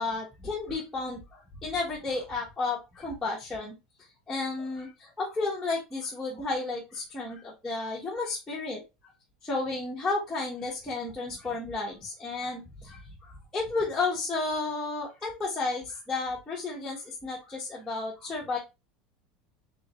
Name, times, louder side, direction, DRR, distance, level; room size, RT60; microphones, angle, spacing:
voice 1, 0.0-3.7 4.3-8.8 9.4-18.6, left 3 dB, 5° left, -7 dB, 1.2 m, -32 dB
3.7 x 3.7 x 3.1 m, 0.25 s
supercardioid pair, 150°, 2 cm